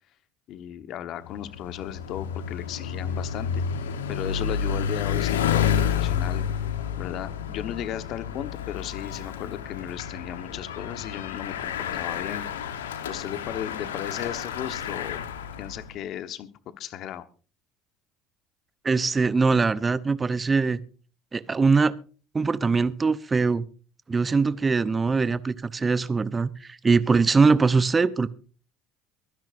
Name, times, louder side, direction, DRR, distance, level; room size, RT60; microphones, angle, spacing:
voice 1, 0.5-3.6 4.1-6.4 7.0-12.5 13.1-15.2 15.6-16.5 16.8-17.2, left 10 dB, 55° left, 1.2 m, -35 dB
Bicycle, 1.2-15.9, left 8 dB, 80° left, 1.1 m, -30 dB
voice 2, 18.8-20.8 21.3-21.9 22.3-23.6 24.1-28.3, right 4 dB, 25° right, 0.8 m, -22 dB
23.5 x 10.5 x 2.6 m
hypercardioid pair, 65°, 0 cm